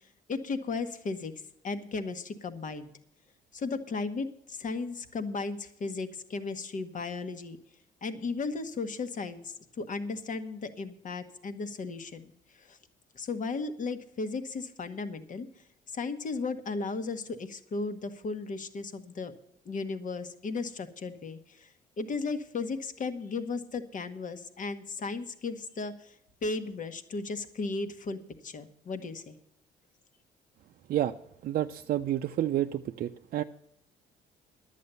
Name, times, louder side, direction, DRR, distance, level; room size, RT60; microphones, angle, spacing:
voice 1, 0.3-1.3 1.6-2.9 3.5-7.6 8.0-12.3 12.6-12.8 13.1-15.5 15.9-19.3 19.6-21.7 22.0-26.1 26.4-29.4, left 4 dB, 45° left, 9 dB, 1.2 m, -35 dB
voice 2, 31.4-33.4, right 12 dB, 55° right, 5 dB, 0.5 m, -29 dB
11.0 x 8.5 x 6.8 m, 0.72 s
supercardioid pair, 70°, 18 cm